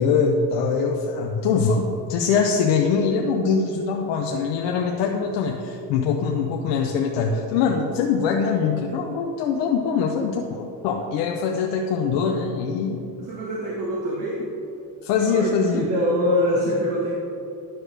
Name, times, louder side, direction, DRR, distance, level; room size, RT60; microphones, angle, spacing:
voice 1, 0.0-13.0 15.0-15.9, left 5 dB, 85° left, 1 dB, 0.8 m, -23 dB
voice 2, 13.2-14.5 15.2-17.2, equal, 55° right, -4 dB, 1.4 m, -24 dB
10.5 x 6.4 x 3.3 m, 2.8 s
cardioid pair, 180°, 41 cm